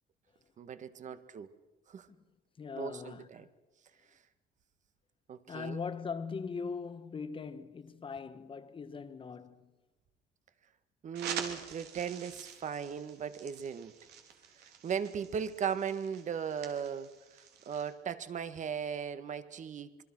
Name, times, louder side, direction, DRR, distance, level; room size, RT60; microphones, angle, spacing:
voice 1, 0.6-1.5 1.9-2.1 2.8-3.5 5.3-5.8 11.0-14.0 14.6-20.0, right 7 dB, 45° right, 1.6 m, -38 dB
voice 2, 2.6-3.5 5.5-9.7, left 5 dB, 30° left, 1.4 m, -41 dB
sound 1, 11.1-17.9, right 7 dB, 75° right, 3.5 m, -46 dB
26.5 x 23.0 x 6.2 m
cardioid pair, 110°, 17 cm